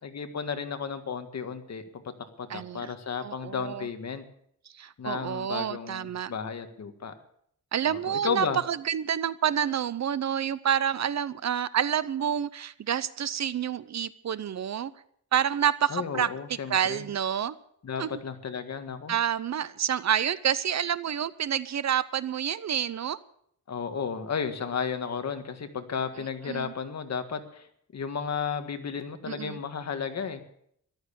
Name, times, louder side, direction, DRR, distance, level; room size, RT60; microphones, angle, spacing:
voice 1, 0.0-1.8 2.4-4.2 5.0-7.1 7.9-8.6 15.9-17.0 17.8-19.1 23.7-30.4, left 6 dB, 50° left, 7 dB, 1.7 m, -33 dB
voice 2, 2.5-2.9 3.2-3.9 4.7-6.3 7.7-14.9 15.3-16.3 16.7-17.5 18.0-18.2 19.1-23.2 26.5-26.7 29.3-29.6, right 9 dB, 50° right, 17 dB, 0.7 m, -28 dB
14.5 x 12.5 x 6.9 m, 0.67 s
wide cardioid pair, 135°, 34 cm